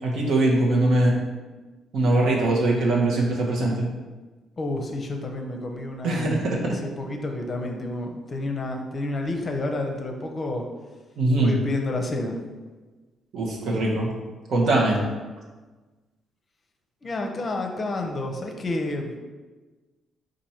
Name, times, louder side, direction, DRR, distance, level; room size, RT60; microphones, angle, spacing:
voice 1, 0.0-1.2 1.9-3.9 6.0-6.7 11.2-11.5 13.3-14.1 14.5-15.0, right 2 dB, 70° right, -2 dB, 1.0 m, -22 dB
voice 2, 4.6-6.3 6.6-10.6 11.4-12.4 17.0-19.1, left 2 dB, 35° left, 3 dB, 0.6 m, -30 dB
4.2 x 2.6 x 4.3 m, 1.3 s
cardioid pair, 90°, 0 cm